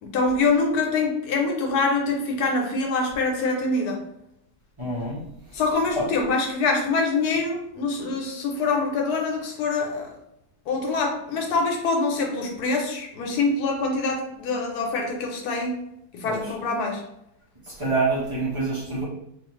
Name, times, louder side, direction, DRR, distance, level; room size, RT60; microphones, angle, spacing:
voice 1, 0.0-4.0 5.5-10.1 10.7-15.8 16.1-17.0, left 3 dB, 80° left, 1 dB, 1.2 m, -25 dB
voice 2, 4.8-5.2 5.5-5.6 5.9-6.1 16.2-16.5 17.7-19.0, right 3 dB, 25° right, -7 dB, 0.8 m, -26 dB
2.7 x 2.4 x 3.0 m, 0.80 s
omnidirectional pair, 1.7 m